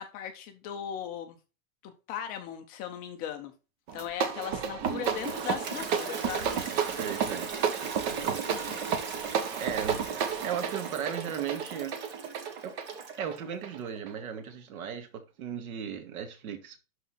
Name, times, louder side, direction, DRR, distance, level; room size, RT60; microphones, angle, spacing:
voice 1, 0.0-1.4 1.8-3.5 3.9-6.5 8.5-9.0, left 9 dB, 20° left, 0.5 m, -38 dB
sound 1, 3.9-14.2, right 7 dB, 45° right, 1.6 m, -32 dB
Toilet flush, 4.8-13.4, right 5 dB, 25° right, 1.2 m, -40 dB
voice 2, 6.9-7.5 7.8-8.5 9.6-10.0 10.4-12.0 12.6-12.7 13.1-16.8, right 8 dB, 70° right, 2.1 m, -36 dB
12.0 x 4.1 x 4.2 m
supercardioid pair, 160°, 44 cm